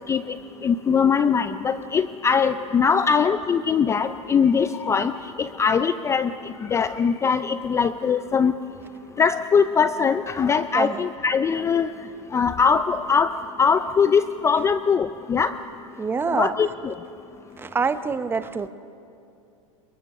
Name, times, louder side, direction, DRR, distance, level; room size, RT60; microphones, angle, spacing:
voice 1, 0.6-6.3 6.7-8.5 9.2-11.9 12.3-13.3 13.6-15.5 16.3-16.9, left 6 dB, 15° left, 12 dB, 0.5 m, -21 dB
voice 2, 16.0-16.5 17.6-18.7, right 5 dB, 15° right, 12 dB, 0.8 m, -25 dB
27.5 x 23.0 x 6.0 m, 2.6 s
hypercardioid pair, 125°, 17 cm